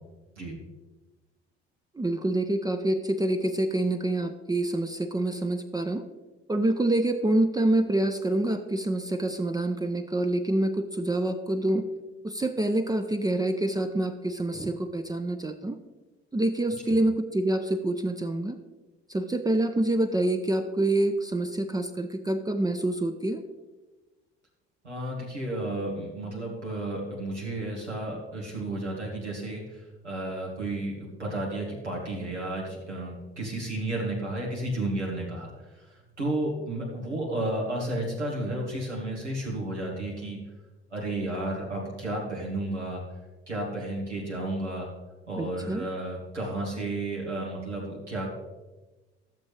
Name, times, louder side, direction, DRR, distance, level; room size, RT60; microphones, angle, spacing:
voice 1, 1.9-6.0 6.5-11.9 12.2-15.8 16.3-18.6 19.1-23.4 45.4-45.9, right 1 dB, 10° right, 7 dB, 0.6 m, -26 dB
voice 2, 24.8-35.5 35.7-35.9 36.2-40.4 40.9-43.0 43.5-44.9 45.3-48.3, right 1 dB, 85° right, -3 dB, 1.9 m, -32 dB
14.0 x 7.2 x 3.3 m, 1.2 s
figure-of-eight pair, 50°, 34 cm